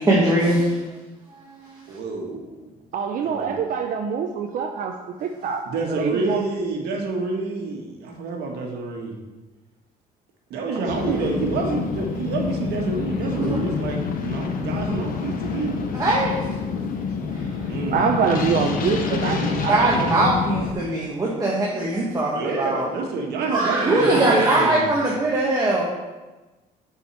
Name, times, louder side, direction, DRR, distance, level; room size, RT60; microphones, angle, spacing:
voice 1, 0.1-0.8 1.6-1.7 13.4-13.6 15.9-16.4 17.3-17.5 19.7-22.9 23.5-25.8, right 2 dB, 20° right, -4 dB, 1.2 m, -21 dB
voice 2, 1.9-2.8 3.2-3.6 5.6-9.2 10.5-15.8 17.7-18.0 19.8-20.2 22.3-24.9, right 3 dB, 75° right, 1 dB, 1.5 m, -28 dB
voice 3, 2.9-4.9 5.2-5.6 5.9-6.5 10.8-11.2 17.9-20.6 21.0-21.1, right 6 dB, 55° right, 3 dB, 0.6 m, -25 dB
sound 1, 10.9-20.7, left 6 dB, 55° left, 0.9 m, -27 dB
7.2 x 4.8 x 4.4 m, 1.2 s
cardioid pair, 110°, 17 cm